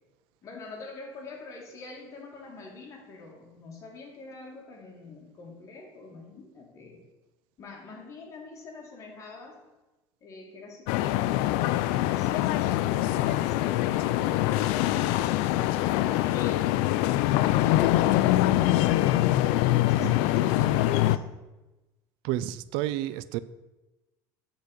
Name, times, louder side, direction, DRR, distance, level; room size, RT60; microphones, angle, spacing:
voice 1, 0.4-7.0 7.6-9.6 10.2-16.9 17.4-19.0 19.7-21.2, left 3 dB, 35° left, 0 dB, 2.0 m, -45 dB
sound 1, 10.9-21.2, left 15 dB, 80° left, 0.4 m, -24 dB
voice 2, 22.2-23.4, right 14 dB, 75° right, 16 dB, 0.4 m, -30 dB
8.2 x 3.9 x 6.4 m, 1.1 s
cardioid pair, 140°, 9 cm